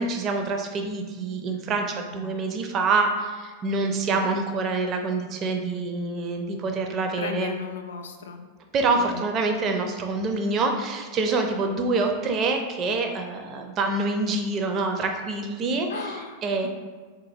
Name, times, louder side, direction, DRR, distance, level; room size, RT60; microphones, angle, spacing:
voice 1, 0.0-7.5 8.7-16.7, right 3 dB, 30° right, 4 dB, 0.4 m, -26 dB
voice 2, 3.9-4.3 7.2-8.4 9.0-9.2 15.9-16.4 16.6-16.7, left 6 dB, 65° left, 5 dB, 0.3 m, -35 dB
3.8 x 2.5 x 2.7 m, 1.5 s
figure-of-eight pair, 90°, 0 cm